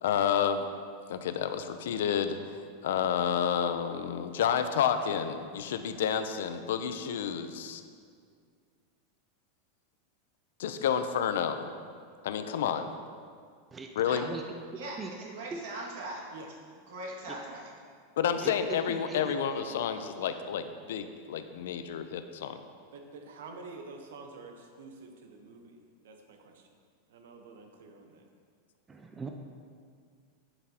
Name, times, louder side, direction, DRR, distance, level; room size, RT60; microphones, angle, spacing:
voice 1, 0.0-0.7 1.1-7.8 10.6-11.7 12.2-12.9 14.0-14.3 18.2-22.6, left 8 dB, 80° left, 9 dB, 0.5 m, -30 dB
voice 2, 13.7-14.4 15.0-15.1 15.5-15.6 18.4-19.6 28.9-29.3, right 4 dB, 10° right, 3 dB, 0.3 m, -41 dB
voice 3, 14.7-16.2 16.9-17.7, right 2 dB, 65° right, -3 dB, 2.0 m, -40 dB
voice 4, 22.9-26.7 27.1-28.3, right 3 dB, 90° right, 4 dB, 1.0 m, -48 dB
11.0 x 6.1 x 2.9 m, 2.1 s
supercardioid pair, 175°, 0 cm